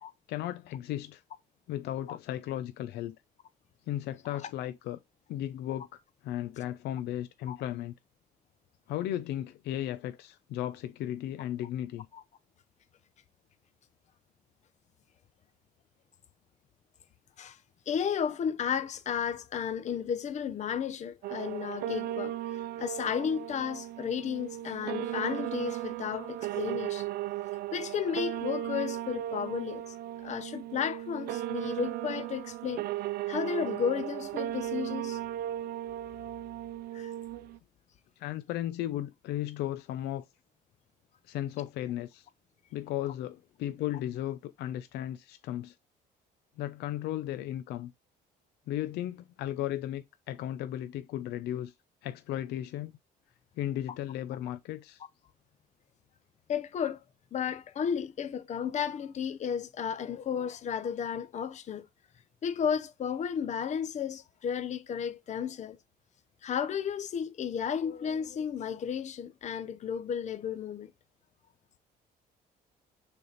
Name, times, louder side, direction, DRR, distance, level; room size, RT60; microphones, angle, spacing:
voice 1, 0.3-1.2 1.7-3.1 3.9-5.0 5.3-7.9 8.9-12.1 38.2-40.2 41.2-42.3 42.7-45.7 46.6-47.9 48.7-51.7 52.0-52.9 53.6-55.0, left 12 dB, 80° left, 0.7 m, -35 dB
voice 2, 17.9-22.3 22.8-27.1 27.7-30.0 30.2-32.8 33.3-35.2 36.9-37.1 56.5-57.0 57.3-61.9 62.4-65.8 66.4-70.9, left 8 dB, 45° left, 0.8 m, -33 dB
sound 1, 21.2-37.6, right 13 dB, 65° right, 0.4 m, -36 dB
6.7 x 3.5 x 4.0 m
cardioid pair, 110°, 17 cm